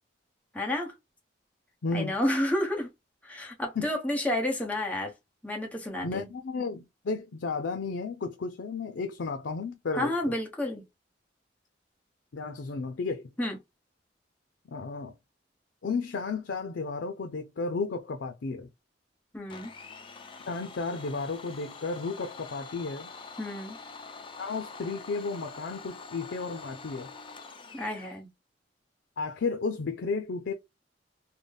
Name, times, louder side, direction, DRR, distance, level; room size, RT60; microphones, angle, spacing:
voice 1, 0.5-0.9 1.9-2.9 3.2-5.1 5.4-6.3 9.9-10.8 13.4-13.6 19.3-19.7 23.4-23.8 27.7-28.3, left 1 dB, 10° left, 0.9 m, -30 dB
voice 2, 1.8-2.2 3.8-3.9 6.0-10.3 12.3-13.3 14.7-15.1 15.8-18.7 20.5-23.1 24.4-27.1 29.2-30.5, left 4 dB, 85° left, 0.5 m, -33 dB
Domestic sounds home sounds, 19.5-28.2, left 4 dB, 30° left, 0.5 m, -45 dB
3.9 x 2.1 x 3.3 m
head